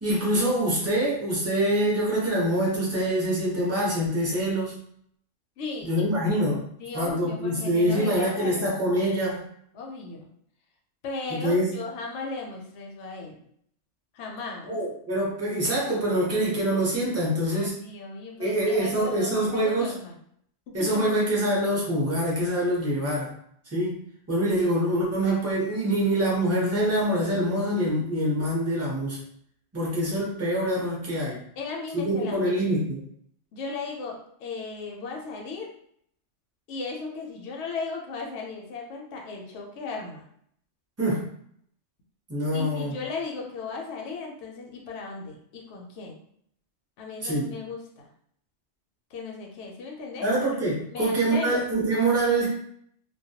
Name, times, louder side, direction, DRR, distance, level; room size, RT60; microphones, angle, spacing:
voice 1, 0.0-4.7 5.8-6.6 6.9-9.4 11.3-11.7 14.6-17.8 18.4-19.9 20.7-23.3 23.7-24.0 24.3-29.2 29.7-31.4 31.9-33.0 41.0-41.2 42.3-43.0 47.2-47.5 50.2-52.5, right 1 dB, 15° right, -5 dB, 0.5 m, -25 dB
voice 2, 5.6-6.1 6.8-8.7 9.7-10.3 11.0-13.4 14.1-14.7 17.5-20.1 20.7-21.2 31.6-32.5 33.5-35.7 36.7-40.3 42.5-46.2 47.0-48.1 49.1-50.3 50.9-51.6, left 4 dB, 70° left, 0 dB, 0.8 m, -36 dB
2.2 x 2.1 x 2.7 m, 0.68 s
omnidirectional pair, 1.3 m